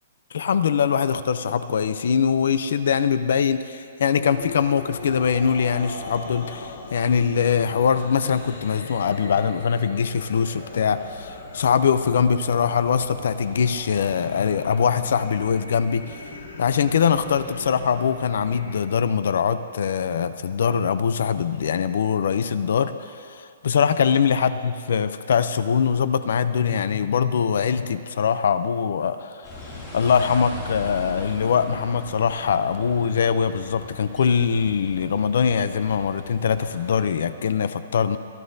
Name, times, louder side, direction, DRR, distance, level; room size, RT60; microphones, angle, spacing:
voice 1, 0.3-16.2 16.6-38.2, left 7 dB, 55° left, 13 dB, 0.5 m, -22 dB
sound 1, 4.3-18.7, left 3 dB, 80° left, 3.2 m, -39 dB
sound 2, 29.4-37.0, left 2 dB, 15° left, 2.5 m, -39 dB
25.5 x 11.5 x 2.7 m, 2.3 s
hypercardioid pair, 180°, 0 cm